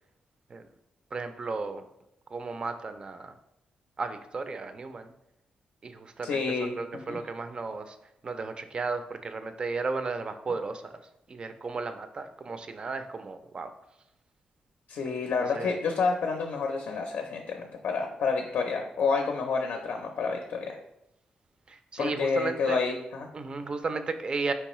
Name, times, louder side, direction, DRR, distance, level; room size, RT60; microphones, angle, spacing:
voice 1, 1.1-1.8 2.3-3.3 4.0-5.1 5.8-8.0 8.2-11.0 11.3-13.7 15.5-15.7 21.7-22.8 23.3-24.5, right 4 dB, 35° right, 9 dB, 0.4 m, -34 dB
voice 2, 6.2-7.2 14.9-20.8 22.0-23.3, left 4 dB, 75° left, 3 dB, 0.5 m, -29 dB
4.5 x 3.1 x 3.0 m, 0.83 s
wide cardioid pair, 140°, 3 cm